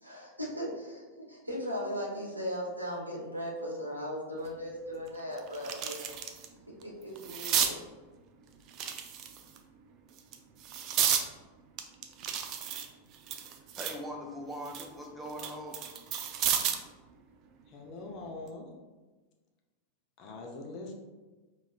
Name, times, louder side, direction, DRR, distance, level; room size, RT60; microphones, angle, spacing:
voice 1, 0.0-6.1 6.8-7.8, equal, 85° right, -4 dB, 1.0 m, -37 dB
sound 1, 4.4-4.5 5.0-6.5 6.8-7.7 8.7-9.6 10.2-11.3 11.8-14.0 14.4-16.9 18.3-18.5, right 8 dB, 40° right, 0.4 m, -32 dB
voice 2, 13.4-15.8, equal, 5° right, 0 dB, 0.7 m, -41 dB
voice 3, 17.7-18.7 20.2-20.9, left 2 dB, 40° left, 1 dB, 0.7 m, -42 dB
5.0 x 3.1 x 2.4 m, 1.2 s
figure-of-eight pair, 90°, 0 cm